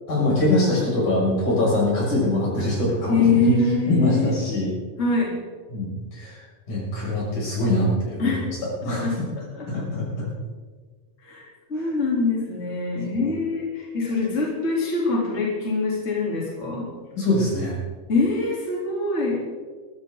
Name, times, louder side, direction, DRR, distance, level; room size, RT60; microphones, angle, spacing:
voice 1, 0.1-3.4 3.9-4.7 5.7-6.4 6.7-8.4 8.8-9.1 9.7-10.3 11.7-11.9 13.1-13.3 17.2-17.8, left 1 dB, 70° left, -5 dB, 8.3 m, -23 dB
voice 2, 3.1-4.4 5.0-5.3 8.2-8.4 8.8-9.2 9.8-9.9 11.2-11.4 11.7-16.9 18.1-19.4, left 3 dB, 20° left, -3 dB, 3.6 m, -24 dB
22.5 x 14.5 x 4.0 m, 1.5 s
omnidirectional pair, 3.7 m